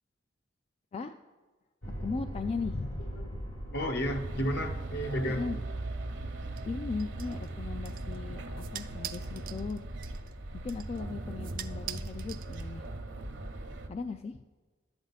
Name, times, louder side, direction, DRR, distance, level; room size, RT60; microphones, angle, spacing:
sound 1, 1.8-7.0, equal, 80° left, 2.1 m, -41 dB
voice 1, 1.9-3.0 5.3-5.6 6.6-9.8 10.6-12.8 13.9-14.4, left 4 dB, 35° left, 8 dB, 0.3 m, -37 dB
voice 2, 3.0-3.3 3.7-5.4, equal, 60° left, 6 dB, 0.9 m, -32 dB
sound 2, 4.0-13.9, right 2 dB, 65° right, 0.9 m, -39 dB
sound 3, 6.6-13.0, right 12 dB, 50° right, 0.4 m, -46 dB
11.5 x 8.7 x 4.0 m, 1.3 s
head